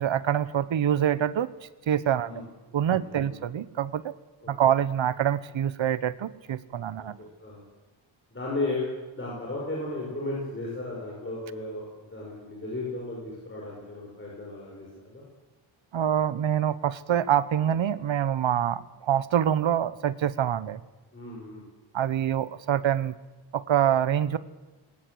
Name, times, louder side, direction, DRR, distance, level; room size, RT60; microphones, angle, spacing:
voice 1, 0.0-1.5 1.9-2.3 2.7-4.1 4.5-7.1 15.9-20.8 21.9-23.1 23.5-24.4, right 10 dB, 70° right, 16 dB, 1.0 m, -25 dB
voice 2, 2.9-3.4 4.4-4.5 7.0-7.6 8.3-15.2 21.1-21.6, left 2 dB, 25° left, -4 dB, 5.8 m, -35 dB
20.5 x 19.0 x 7.9 m, 1.2 s
wide cardioid pair, 155°, 48 cm